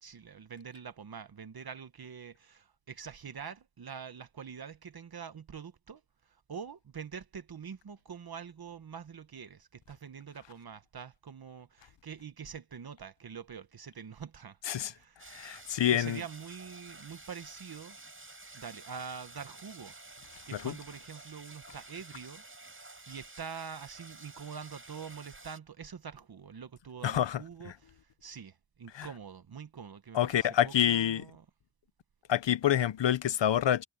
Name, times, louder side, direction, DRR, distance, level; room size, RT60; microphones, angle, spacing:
voice 1, 0.0-6.0 6.3-14.6 14.9-15.2 15.9-18.0 18.5-19.9 20.5-22.4 23.1-31.4, right 6 dB, 55° right, 1.2 m, -45 dB
sound 1, 15.2-25.6, right 2 dB, 30° right, 8.0 m, -51 dB
voice 2, 15.3-16.2 20.5-20.7 27.0-27.7 28.9-29.1 30.1-31.3 32.3-33.8, left 11 dB, 75° left, 0.8 m, -27 dB
wide cardioid pair, 95°, 44 cm